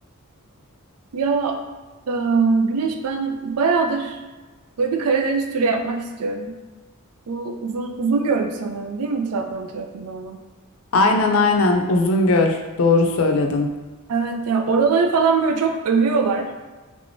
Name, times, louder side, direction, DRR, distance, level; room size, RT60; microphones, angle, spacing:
voice 1, 1.1-1.6 2.1-4.2 4.8-6.5 7.3-10.4 14.1-16.5, right 4 dB, 85° right, 5 dB, 0.4 m, -22 dB
voice 2, 10.9-13.7, left 3 dB, 65° left, 3 dB, 0.5 m, -18 dB
3.3 x 3.3 x 2.6 m, 1.3 s
head